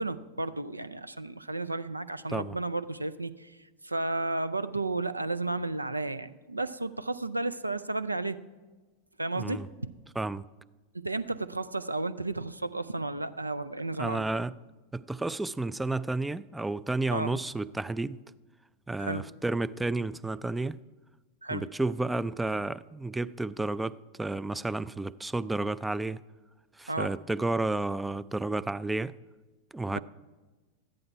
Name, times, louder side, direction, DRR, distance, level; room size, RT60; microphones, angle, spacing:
voice 1, 0.0-3.5 3.8-8.4 9.2-9.6 10.9-14.2 17.1-17.4 19.0-19.3 21.4-21.6 26.9-27.1 30.0-30.1, right 2 dB, 85° right, 0.4 m, -33 dB
voice 2, 9.3-9.7 10.2-10.4 14.0-14.5 14.9-18.2 18.9-20.8 21.5-26.2 26.8-29.2 29.7-30.0, right 2 dB, 5° right, 0.3 m, -31 dB
14.0 x 11.0 x 4.6 m
figure-of-eight pair, 90°, 0 cm